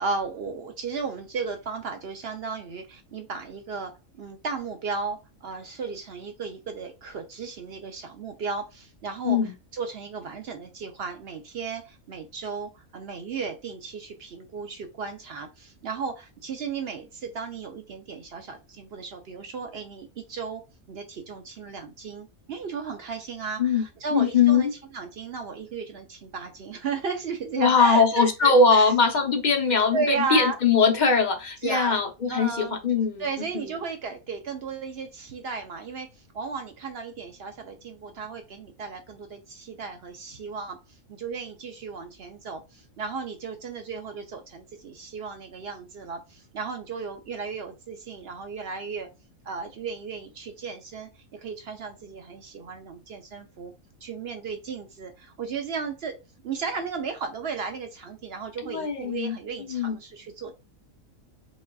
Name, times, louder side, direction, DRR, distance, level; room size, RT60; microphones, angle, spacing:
voice 1, 0.0-9.4 9.7-20.6 20.9-28.9 29.9-30.6 31.6-32.0 32.3-32.7 33.2-36.1 36.3-40.8 41.1-49.1 49.4-53.7 54.0-56.2 56.4-60.5, right 5 dB, 60° right, 0.7 m, -34 dB
voice 2, 24.1-24.7 27.6-33.3 33.5-33.7 58.6-59.4 59.7-60.0, left 5 dB, 45° left, 0.7 m, -21 dB
7.2 x 2.4 x 2.3 m
omnidirectional pair, 1.4 m